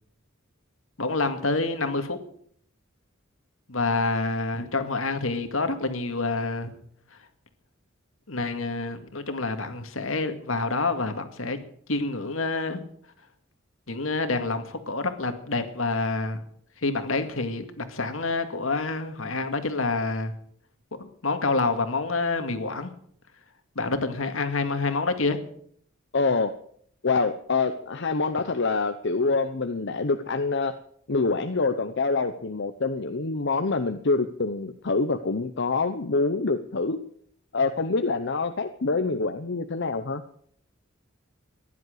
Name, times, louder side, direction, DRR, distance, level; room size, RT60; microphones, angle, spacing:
voice 1, 1.0-2.2 3.7-6.7 8.3-11.6 11.9-12.8 13.9-16.4 16.8-20.3 21.0-22.9 23.8-25.5, left 3 dB, 80° left, 8 dB, 2.1 m, -27 dB
voice 2, 26.1-26.5 27.0-30.7 31.1-37.0 37.5-40.2, left 3 dB, 60° left, 7 dB, 0.9 m, -26 dB
15.5 x 11.0 x 7.9 m, 0.64 s
head